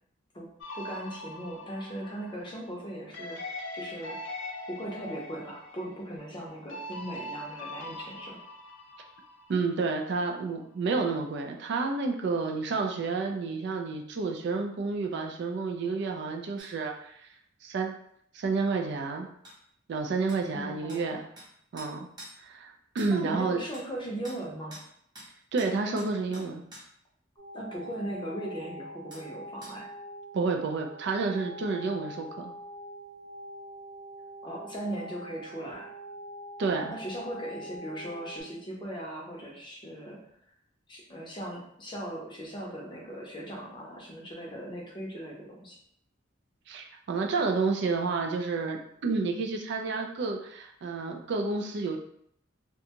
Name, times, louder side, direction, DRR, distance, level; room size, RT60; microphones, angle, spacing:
sound 1, 0.6-10.0, left 1 dB, 70° left, 0.4 m, -42 dB
voice 1, 0.7-3.4 3.7-4.2 4.7-8.4 20.5-21.2 23.1-24.8 27.5-29.9 34.4-35.9 36.9-40.2 40.9-45.8, right 1 dB, 25° left, -2 dB, 0.6 m, -38 dB
voice 2, 9.5-17.3 17.6-17.9 18.3-19.3 19.9-21.3 21.7-22.1 22.4-23.6 25.5-26.7 30.3-32.5 36.6-36.9 46.7-52.0, right 4 dB, 65° right, 3 dB, 0.4 m, -30 dB
sound 2, 16.6-16.7 19.4-19.6 20.3-20.4 20.9-21.0 21.4-21.5 21.8-22.4 23.0-23.1 23.7-23.9 24.2-24.4 24.7-24.9 25.2-25.3 25.6-26.9 29.1-29.3 29.6-29.8, right 1 dB, 20° right, 0.8 m, -47 dB
sound 3, 27.4-38.4, equal, 45° right, 1.0 m, -44 dB
2.5 x 2.2 x 2.8 m, 0.70 s
head